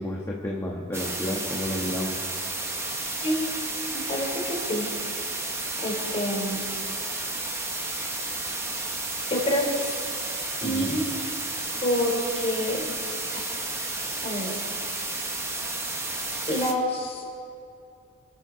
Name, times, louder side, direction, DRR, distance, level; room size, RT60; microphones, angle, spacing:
voice 1, 0.0-2.2 10.6-11.0 12.3-12.4, left 1 dB, 10° left, -3 dB, 1.4 m, -31 dB
sound 1, 0.9-16.7, right 2 dB, 10° right, 1.2 m, -32 dB
voice 2, 3.9-4.9 5.8-6.6 9.3-10.0 10.6-11.1 11.8-12.9 13.3-13.4 14.2-14.6 15.2-15.3 16.5-17.2, equal, 25° left, -1 dB, 3.9 m, -27 dB
27.5 x 12.5 x 4.1 m, 2.5 s
head